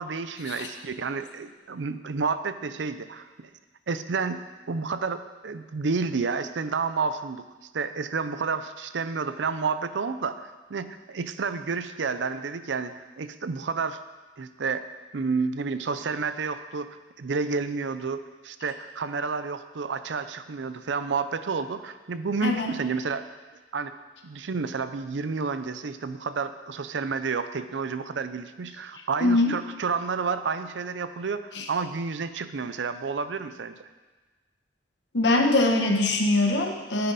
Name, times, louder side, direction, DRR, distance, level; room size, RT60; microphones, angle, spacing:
voice 1, 0.0-3.5 3.9-4.4 4.7-7.4 7.7-14.0 14.4-14.8 15.1-23.2 23.7-23.9 24.2-33.8, right 4 dB, 80° right, 11 dB, 0.5 m, -30 dB
voice 2, 22.4-22.7 29.2-29.5 31.5-31.6 35.1-37.1, left 2 dB, 70° left, 3 dB, 1.2 m, -22 dB
9.6 x 9.5 x 4.1 m, 1.3 s
head